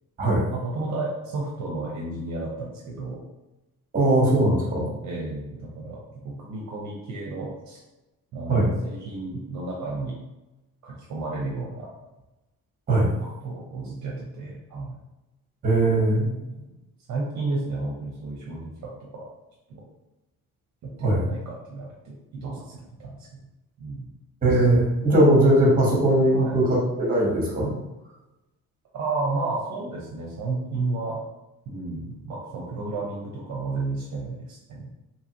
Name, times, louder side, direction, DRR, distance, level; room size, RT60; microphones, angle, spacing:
voice 1, 0.5-3.2 5.0-7.8 8.3-10.2 10.8-11.9 13.0-15.0 16.2-16.8 17.1-19.3 19.7-19.8 20.8-23.4 23.8-24.1 24.5-24.6 26.3-26.6 28.9-31.2 31.7-34.9, right 3 dB, 55° right, -3 dB, 0.7 m, -32 dB
voice 2, 3.9-4.9 8.5-8.7 12.9-13.1 15.6-16.3 21.0-21.2 24.4-27.7, right 1 dB, 25° right, -3 dB, 1.1 m, -20 dB
2.8 x 2.5 x 2.8 m, 0.99 s
cardioid pair, 130°, 34 cm